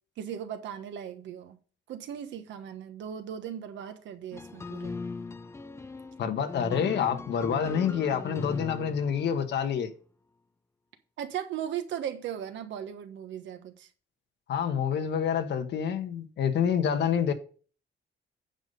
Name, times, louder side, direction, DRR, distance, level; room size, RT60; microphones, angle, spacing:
voice 1, 0.2-1.6 1.9-5.0 11.2-13.9, right 9 dB, 90° right, 1.3 m, -37 dB
sound 1, 4.3-9.7, left 3 dB, 15° left, 0.5 m, -39 dB
voice 2, 6.2-9.9 14.5-17.3, left 8 dB, 70° left, 1.3 m, -27 dB
9.0 x 5.7 x 5.3 m
cardioid pair, 150°, 19 cm